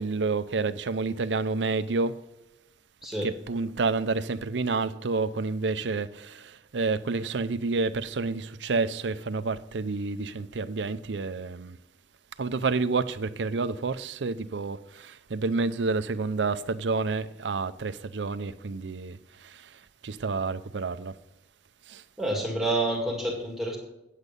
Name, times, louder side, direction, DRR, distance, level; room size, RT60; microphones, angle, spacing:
voice 1, 0.0-2.2 3.2-11.8 12.4-21.1 21.9-22.0, right 3 dB, 90° right, 0.6 m, -29 dB
voice 2, 22.2-23.8, right 1 dB, ahead, 2.0 m, -28 dB
9.4 x 8.2 x 5.3 m
head